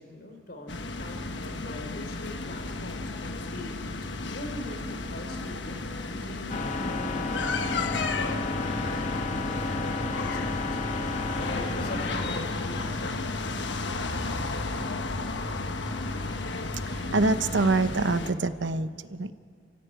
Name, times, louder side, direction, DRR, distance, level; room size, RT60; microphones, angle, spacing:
voice 1, 0.0-13.6, left 1 dB, 60° left, 4 dB, 3.8 m, -42 dB
sound 1, 0.7-18.3, left 3 dB, 75° left, 1.4 m, -34 dB
sound 2, 6.5-12.3, left 3 dB, 40° left, 1.2 m, -32 dB
sound 3, 7.5-18.0, left 1 dB, 15° left, 1.1 m, -39 dB
voice 2, 17.1-19.3, right 3 dB, 85° right, 12 dB, 0.9 m, -25 dB
28.5 x 15.0 x 9.1 m, 2.1 s
head